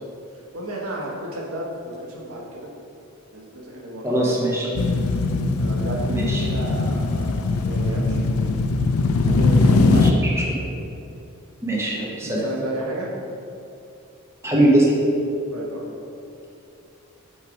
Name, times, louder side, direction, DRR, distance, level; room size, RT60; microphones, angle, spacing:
voice 1, 0.5-2.7 3.3-4.4 5.6-8.3 9.3-10.3 12.2-13.1 15.5-15.8, right 1 dB, 80° right, -2 dB, 1.2 m, -32 dB
voice 2, 4.0-4.7 6.1-6.4 9.8-10.4 11.6-12.4 14.4-14.9, right 1 dB, 10° right, -5 dB, 1.0 m, -21 dB
sound 1, 4.7-10.1, left 3 dB, 75° left, 0.4 m, -20 dB
8.8 x 3.2 x 4.9 m, 2.6 s
head